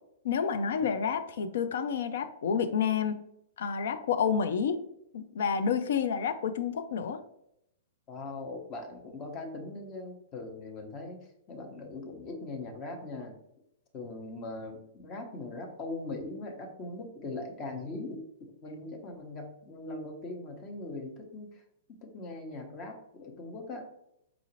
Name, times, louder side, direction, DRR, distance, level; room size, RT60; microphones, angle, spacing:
voice 1, 0.2-3.2 3.6-4.8 5.1-7.2, left 6 dB, 60° left, 10 dB, 0.4 m, -29 dB
voice 2, 8.1-13.4 13.9-21.6 21.9-23.9, left 2 dB, 30° left, 2 dB, 0.9 m, -40 dB
4.9 x 2.4 x 3.0 m, 0.78 s
figure-of-eight pair, 110°, 0 cm